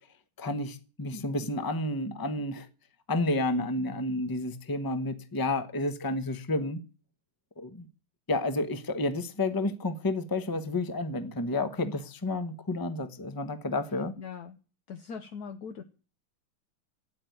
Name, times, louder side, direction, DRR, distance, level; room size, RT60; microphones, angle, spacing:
voice 1, 0.4-2.7 3.1-6.8 7.6-7.9 8.3-14.1, left 2 dB, 15° left, 0.7 m, -30 dB
voice 2, 14.2-14.6 14.9-15.8, left 6 dB, 60° left, 1.2 m, -41 dB
13.0 x 9.4 x 9.2 m
omnidirectional pair, 2.4 m